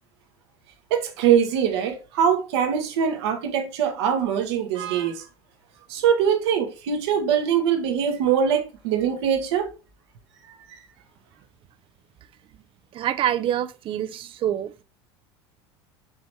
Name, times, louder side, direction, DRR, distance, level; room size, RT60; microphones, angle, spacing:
voice 1, 0.9-5.2 5.9-9.7, right 8 dB, 70° right, 1.0 m, -22 dB
voice 2, 12.9-14.7, right 11 dB, 40° right, 0.5 m, -26 dB
4.6 x 3.0 x 3.1 m
hypercardioid pair, 80°, 14 cm